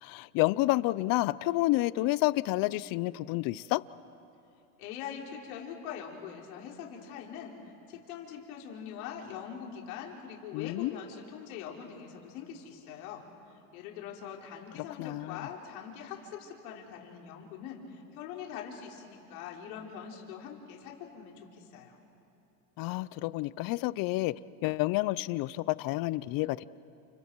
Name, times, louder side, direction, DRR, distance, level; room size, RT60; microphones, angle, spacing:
voice 1, 0.0-3.8 10.5-11.0 14.8-15.5 22.8-24.3 24.6-26.6, left 19 dB, 50° left, 18 dB, 0.7 m, -29 dB
voice 2, 4.8-7.5 7.9-13.2 13.7-22.0, left 8 dB, 75° left, -1 dB, 4.0 m, -43 dB
29.5 x 29.5 x 4.7 m, 2.9 s
supercardioid pair, 120°, 44 cm